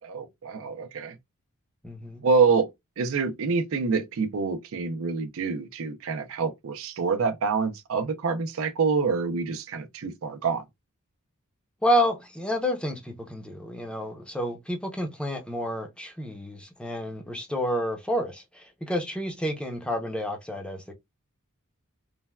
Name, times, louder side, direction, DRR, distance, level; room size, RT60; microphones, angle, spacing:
voice 1, 0.0-1.2 2.2-2.7 3.0-10.6, right 5 dB, 65° right, 0.5 m, -26 dB
voice 2, 1.8-2.2 11.8-20.9, equal, 5° left, 0.6 m, -29 dB
3.2 x 2.1 x 2.2 m
head